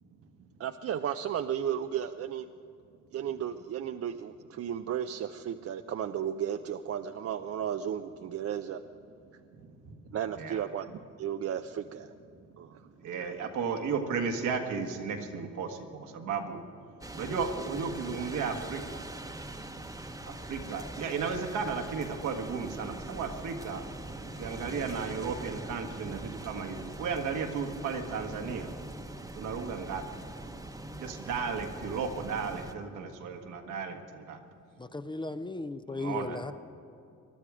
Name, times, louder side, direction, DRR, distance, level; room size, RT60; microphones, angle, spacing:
voice 1, 0.6-2.5 3.1-8.8 10.1-12.1 12.6-12.8 13.2-13.3, right 9 dB, 50° right, 8 dB, 0.5 m, -34 dB
voice 2, 9.6-10.0 10.4-10.6 13.0-16.6 17.1-19.1 20.2-23.8 24.4-28.7 29.4-30.0 30.9-34.4 35.9-36.4, right 5 dB, 80° right, 4 dB, 1.6 m, -34 dB
sound 1, 17.0-32.7, right 1 dB, 10° right, 1.0 m, -42 dB
voice 3, 34.8-36.5, left 2 dB, 15° left, 11 dB, 0.5 m, -36 dB
20.5 x 12.0 x 4.9 m, 2.7 s
cardioid pair, 90°, 30 cm